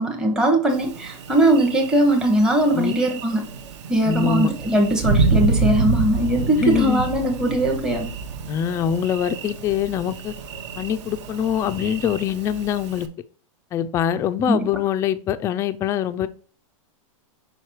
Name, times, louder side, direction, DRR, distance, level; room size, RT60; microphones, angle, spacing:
voice 1, 0.0-3.5 3.9-8.1 14.5-14.7, right 1 dB, 5° right, 0.8 m, -20 dB
Thunder, 0.7-13.1, right 4 dB, 60° right, 0.9 m, -28 dB
voice 2, 4.1-4.5 6.6-7.0 8.5-10.3 10.8-13.1 13.7-16.3, left 9 dB, 15° left, 0.3 m, -23 dB
5.0 x 4.8 x 4.4 m
supercardioid pair, 150°, 17 cm